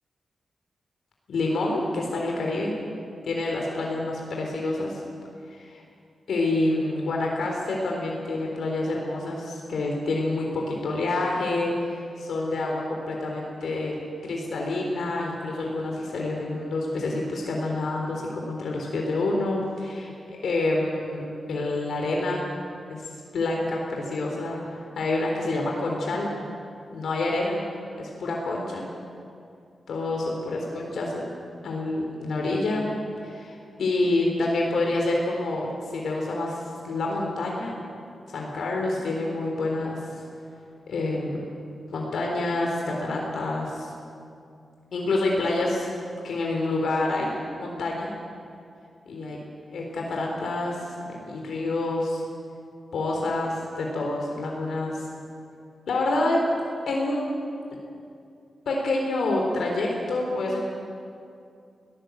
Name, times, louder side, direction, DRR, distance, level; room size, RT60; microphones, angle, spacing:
voice 1, 1.3-2.7 3.2-5.0 5.5-5.8 6.3-14.0 14.2-22.5 22.9-23.0 23.3-26.3 26.9-27.6 28.0-28.9 29.9-31.3 31.6-32.9 33.2-37.8 38.3-40.0 40.9-41.4 41.9-43.9 44.9-45.9 46.2-48.1 49.1-49.4 49.7-52.2 52.9-55.0 55.9-56.4 56.9-57.4 58.7-60.6, left 2 dB, 85° left, -1 dB, 3.6 m, -27 dB
22.5 x 17.5 x 8.0 m, 2.5 s
wide cardioid pair, 140°, 0 cm